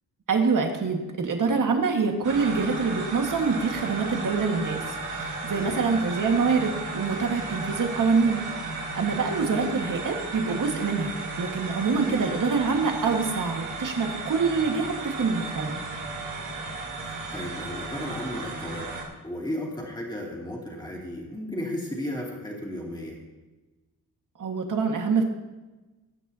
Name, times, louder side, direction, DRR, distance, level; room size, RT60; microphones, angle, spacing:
voice 1, 0.3-4.8 5.1-15.8 24.4-25.2, right 4 dB, 60° right, 3 dB, 1.7 m, -25 dB
sound 1, 2.2-19.0, right 3 dB, 80° right, 3.5 m, -34 dB
voice 2, 5.6-5.9 12.0-12.2 17.0-18.9 19.2-23.2, left 1 dB, 10° left, -3 dB, 2.6 m, -34 dB
20.5 x 9.4 x 2.8 m, 1.2 s
wide cardioid pair, 180°, 37 cm